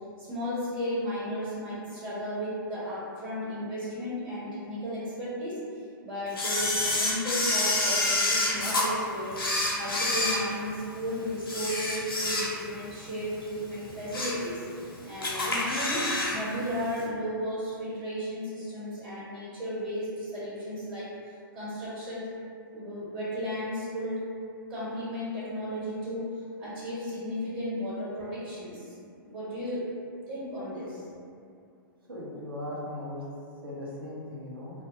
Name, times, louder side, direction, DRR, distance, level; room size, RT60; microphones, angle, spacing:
voice 1, 0.2-5.6 6.0-9.4 9.7-21.1 21.5-22.3 22.7-24.2 24.7-28.9 29.2-29.9 30.3-31.0, equal, 35° right, -10 dB, 0.9 m, -34 dB
Camera, 6.4-8.9 9.3-11.0 11.4-12.8 13.2-13.3 13.8-14.5 14.8-14.9 15.2-16.4 16.6-16.7, left 2 dB, 85° left, 0.6 m, -28 dB
voice 2, 32.1-33.2 33.6-34.7, left 1 dB, 85° right, -5 dB, 0.7 m, -38 dB
2.2 x 2.2 x 2.7 m, 2.3 s
hypercardioid pair, 110°, 12 cm